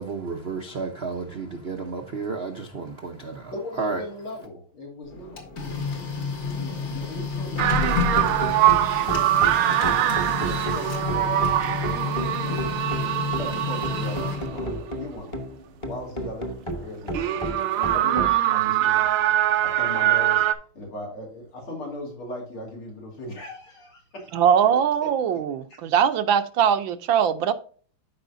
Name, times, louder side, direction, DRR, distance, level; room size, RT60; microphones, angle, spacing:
voice 1, 0.0-3.5 3.8-4.0, right 4 dB, 55° right, 0.6 m, -31 dB
voice 2, 3.5-6.1 6.5-8.4 9.0-12.0 12.4-12.6 13.3-15.4 15.9-16.5 16.8-17.2 17.5-17.6 17.9-19.1 19.6-20.4 20.7-25.4, left 1 dB, 80° left, 3.7 m, -39 dB
Printer, 5.1-14.9, left 5 dB, 55° left, 2.2 m, -30 dB
sound 1, 7.5-18.4, right 1 dB, 20° left, 1.0 m, -34 dB
sound 2, 7.6-14.6 15.2-15.3 17.1-20.5, right 12 dB, 90° right, 1.7 m, -23 dB
voice 3, 24.3-27.5, right 8 dB, 70° right, 1.4 m, -21 dB
13.0 x 5.0 x 2.6 m
omnidirectional pair, 2.3 m